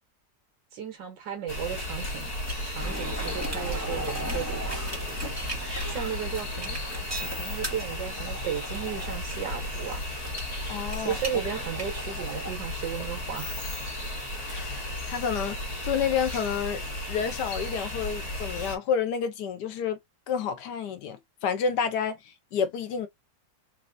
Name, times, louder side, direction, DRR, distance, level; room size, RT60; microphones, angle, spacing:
voice 1, 0.7-2.3 2.6-4.7 5.2-5.3 5.6-6.8 7.2-10.0 11.0-13.5, right 8 dB, 75° right, 1.9 m, -35 dB
sound 1, 1.5-18.8, left 1 dB, 55° left, 1.9 m, -34 dB
sound 2, 2.4-12.5, right 1 dB, 10° right, 1.4 m, -37 dB
voice 2, 10.7-11.2 14.4-16.8 17.1-20.0 20.3-23.1, left 7 dB, 70° left, 1.2 m, -29 dB
4.1 x 2.7 x 2.5 m
omnidirectional pair, 2.0 m